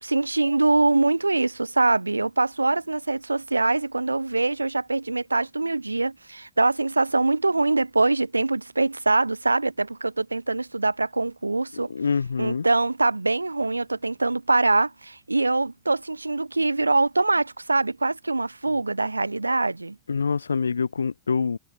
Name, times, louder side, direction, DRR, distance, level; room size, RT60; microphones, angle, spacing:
voice 1, 0.0-11.9 12.4-20.0, right 2 dB, 80° right, 0.9 m, -23 dB
voice 2, 11.7-12.6 20.1-21.6, left 5 dB, 75° left, 3.3 m, -25 dB
figure-of-eight pair, 90°, 0 cm